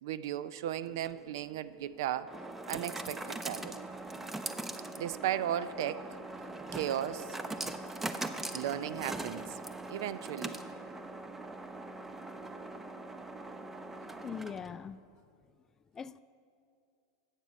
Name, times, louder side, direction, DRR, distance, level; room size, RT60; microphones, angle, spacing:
voice 1, 0.0-2.3 2.7-3.8 5.0-6.1 6.7-7.4 8.5-9.6 9.9-10.6, right 11 dB, 70° right, 0.4 m, -35 dB
sound 1, 0.9-14.8, right 2 dB, 10° right, 0.6 m, -41 dB
voice 2, 14.2-15.0 15.9-16.2, left 6 dB, 20° left, 0.3 m, -41 dB
13.5 x 8.2 x 5.2 m
hypercardioid pair, 110°, 2 cm